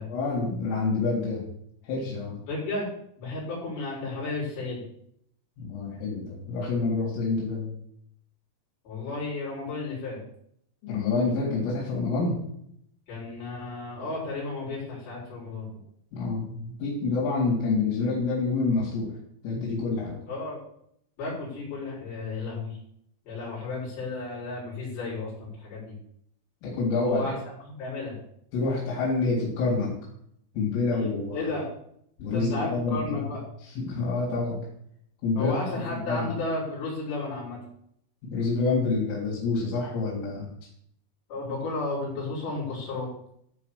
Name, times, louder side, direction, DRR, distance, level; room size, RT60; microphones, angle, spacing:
voice 1, 0.1-1.4 1.9-2.4 5.6-7.7 10.8-12.4 16.1-19.1 19.4-20.2 26.6-27.2 28.5-29.9 30.6-31.5 32.2-33.2 33.6-34.6 35.2-36.3 38.2-40.5, left 3 dB, 80° left, -6 dB, 5.8 m, -27 dB
voice 2, 2.5-2.9 3.2-4.8 8.8-10.2 13.1-15.7 20.3-20.6 21.2-22.8 23.3-25.9 27.0-27.3 27.8-28.2 30.9-31.1 31.3-31.7 32.3-33.4 35.3-37.6 41.3-43.1, left 3 dB, 50° left, -7 dB, 6.5 m, -33 dB
14.0 x 5.0 x 6.8 m, 0.70 s
omnidirectional pair, 5.8 m